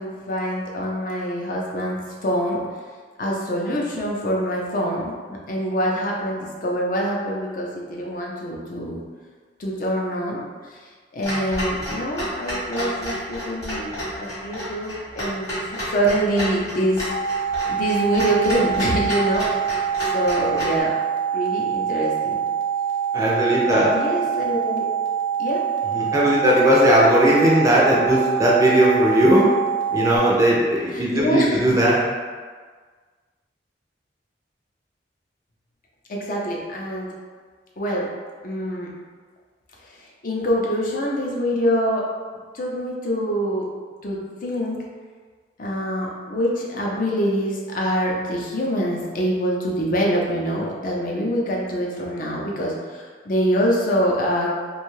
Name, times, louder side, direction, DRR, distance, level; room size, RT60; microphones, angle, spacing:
voice 1, 0.0-2.6 3.2-9.0 9.6-10.9 11.1-17.0 17.7-19.5 20.1-21.0 21.3-22.4 23.6-24.9 25.4-25.6 30.9-31.8 36.1-37.1 37.8-38.1 38.4-38.9 39.8-42.1 42.5-43.7 44.0-44.8 45.6-54.5, equal, 50° left, -2 dB, 0.5 m, -25 dB
Clock, 11.2-20.8, equal, 20° left, 0.9 m, -30 dB
sound 1, 17.1-30.2, right 8 dB, 75° right, 0.6 m, -25 dB
voice 2, 23.1-23.9 25.9-29.5 29.9-32.0, equal, 20° right, -5 dB, 0.4 m, -18 dB
2.6 x 2.3 x 3.0 m, 1.5 s
head